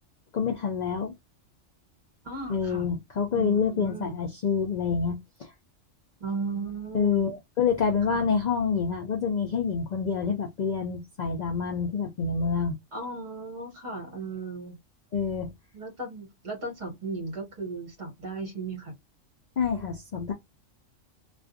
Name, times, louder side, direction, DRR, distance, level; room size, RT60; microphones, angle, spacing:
voice 1, 0.3-1.1 2.5-5.5 6.9-12.7 15.1-15.5 19.6-20.3, left 6 dB, 85° left, 0.4 m, -27 dB
voice 2, 2.2-2.9 3.3-4.1 6.2-7.2 8.1-8.3 12.9-14.8 15.7-18.9, right 3 dB, 40° right, 1.2 m, -36 dB
2.4 x 2.4 x 2.5 m
omnidirectional pair, 1.4 m